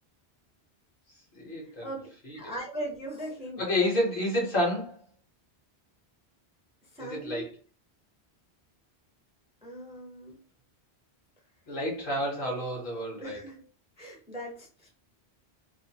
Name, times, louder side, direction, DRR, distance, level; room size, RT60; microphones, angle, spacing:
voice 1, 1.4-1.9 2.2-2.4 3.6-4.9 7.0-7.5 11.7-13.4, left 1 dB, 55° left, 1.0 m, -29 dB
voice 2, 2.3-3.6 6.9-7.4 9.6-10.4 13.1-13.6 14.0-14.9, right 1 dB, 5° right, 0.6 m, -39 dB
2.5 x 2.4 x 2.7 m
omnidirectional pair, 1.1 m